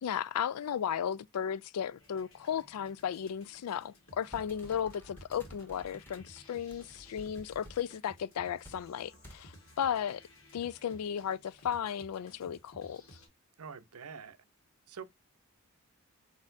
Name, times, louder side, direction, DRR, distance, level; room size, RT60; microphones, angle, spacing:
voice 1, 0.0-10.2 10.5-13.0, left 8 dB, 90° left, 0.4 m, -35 dB
sound 1, 2.0-13.3, equal, 75° left, 1.7 m, -57 dB
sound 2, 4.2-7.8 8.6-8.8 9.2-9.4, equal, 10° left, 1.1 m, -53 dB
voice 2, 13.6-14.4 14.9-15.0, right 6 dB, 85° right, 0.7 m, -45 dB
4.8 x 4.1 x 2.6 m
head